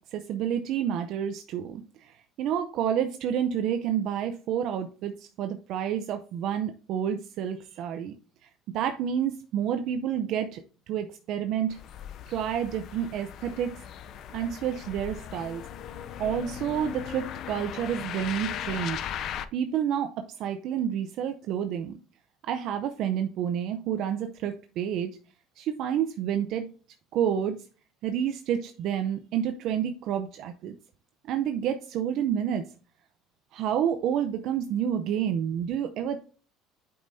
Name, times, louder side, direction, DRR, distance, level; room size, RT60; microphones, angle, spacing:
voice 1, 0.1-8.1 8.4-11.8 12.3-13.8 14.3-15.6 16.2-19.1 19.5-22.0 22.4-25.2 25.6-26.7 27.1-27.6 28.0-30.7 31.3-32.7 33.5-36.2, right 9 dB, 60° right, 0.6 m, -29 dB
sound 1, 11.7-19.5, left 9 dB, 50° left, 0.5 m, -38 dB
8.5 x 5.4 x 2.7 m
cardioid pair, 125°, 0 cm